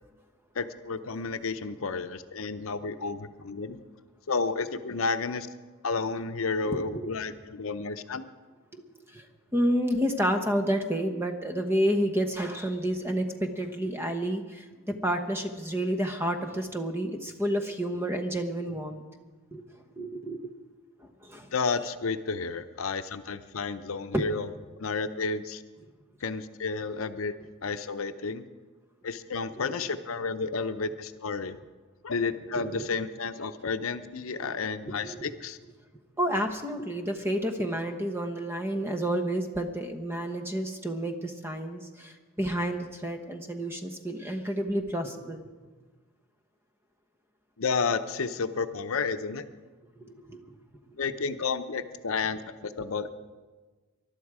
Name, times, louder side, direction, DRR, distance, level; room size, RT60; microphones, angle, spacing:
voice 1, 0.6-3.8 4.3-5.5 5.8-8.3 21.5-24.5 24.8-25.6 26.2-27.3 27.6-28.5 29.0-31.6 32.0-35.6 47.6-49.4 51.0-53.1, left 4 dB, 75° left, 10 dB, 0.7 m, -31 dB
voice 2, 6.6-7.1 8.7-8.8 9.1-9.3 9.5-19.0 19.5-19.6 20.0-20.4 21.0-21.5 24.1-24.2 32.6-33.0 34.4-34.5 35.0-35.3 36.2-45.5 50.0-50.4, equal, 10° right, 6 dB, 1.0 m, -30 dB
20.0 x 12.0 x 4.9 m, 1.3 s
head